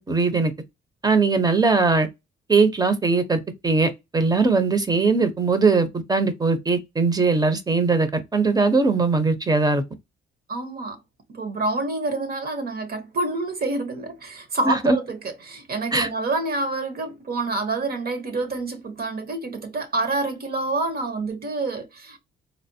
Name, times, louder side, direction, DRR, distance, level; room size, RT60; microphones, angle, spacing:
voice 1, 0.1-0.5 1.0-2.1 2.5-9.8 14.6-15.0 15.9-16.1, right 4 dB, 20° right, 0.8 m, -20 dB
voice 2, 10.5-11.0 11.3-22.2, right 2 dB, 50° right, 1.1 m, -27 dB
4.2 x 2.0 x 2.7 m
cardioid pair, 90°, 20 cm